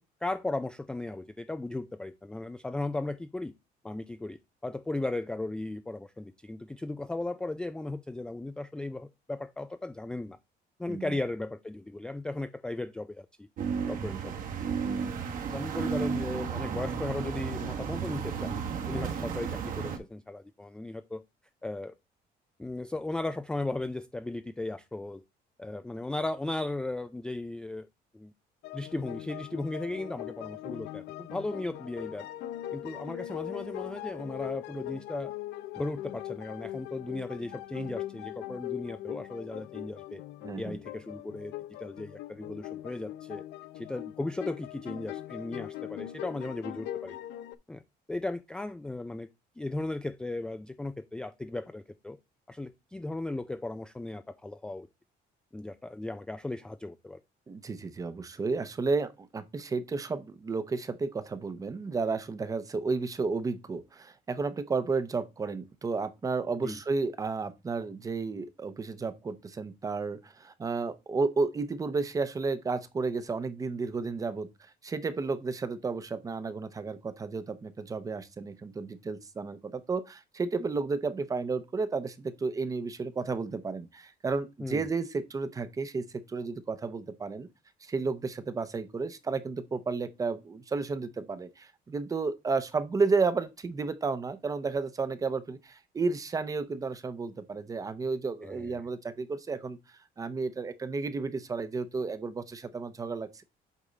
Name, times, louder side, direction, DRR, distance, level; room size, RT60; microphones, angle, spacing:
voice 1, 0.2-3.5 3.8-10.4 10.8-13.3 13.9-14.3 15.5-21.2 21.6-21.9 22.6-25.2 25.6-27.9 28.1-28.3 28.7-32.3 32.7-35.3 35.7-40.2 40.6-41.5 41.8-43.4 43.7-47.2 47.7-47.8 48.1-49.3 49.6-52.2 52.5-54.9 55.5-57.2 66.6-66.8 84.6-84.9 98.4-98.8, left 2 dB, 5° left, 0.3 m, -36 dB
sound 1, 13.6-20.0, right 6 dB, 55° right, 1.4 m, -33 dB
sound 2, 28.6-47.6, left 13 dB, 85° left, 0.6 m, -41 dB
voice 2, 40.4-40.8 57.5-74.5 74.8-87.5 87.8-103.4, right 4 dB, 20° right, 0.7 m, -32 dB
8.3 x 3.6 x 3.9 m
cardioid pair, 160°, 17 cm